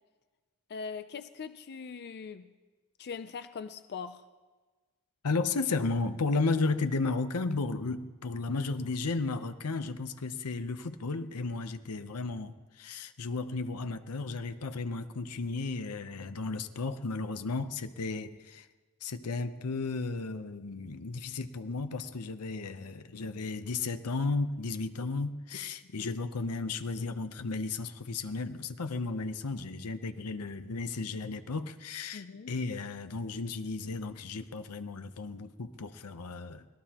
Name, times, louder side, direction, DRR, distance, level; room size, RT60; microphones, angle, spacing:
voice 1, 0.7-2.5 3.0-4.2 25.8-26.1 32.1-32.5, left 5 dB, 50° left, 0.5 m, -41 dB
voice 2, 5.2-18.7 19.0-36.7, left 3 dB, 85° left, 0.8 m, -34 dB
25.0 x 18.0 x 2.9 m
head